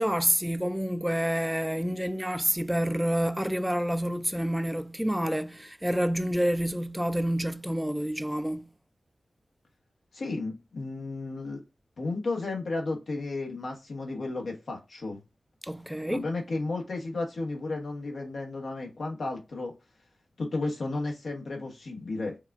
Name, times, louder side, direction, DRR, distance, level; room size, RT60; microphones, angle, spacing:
voice 1, 0.0-8.7 15.6-16.2, equal, 5° right, 0.3 m, -28 dB
voice 2, 10.1-11.6 12.0-15.2 16.1-19.7 20.4-22.4, left 3 dB, 75° left, 1.2 m, -33 dB
5.3 x 2.4 x 2.5 m
cardioid pair, 45°, 0 cm